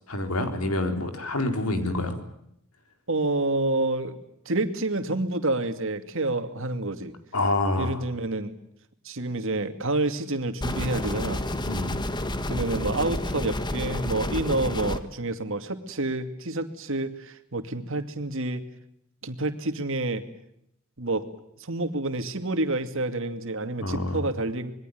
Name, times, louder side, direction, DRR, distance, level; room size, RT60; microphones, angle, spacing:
voice 1, 0.1-2.2 7.3-8.0 11.6-12.0 23.8-24.2, left 2 dB, 85° left, 6 dB, 4.1 m, -27 dB
voice 2, 3.1-4.2 4.5-7.1 7.8-8.5 9.0-11.4 12.5-18.6 19.2-20.2 21.0-21.2 21.6-24.7, right 2 dB, 60° right, 8 dB, 2.5 m, -28 dB
sound 1, 10.6-15.0, left 1 dB, 20° left, 1.5 m, -30 dB
26.0 x 21.5 x 9.3 m, 0.76 s
head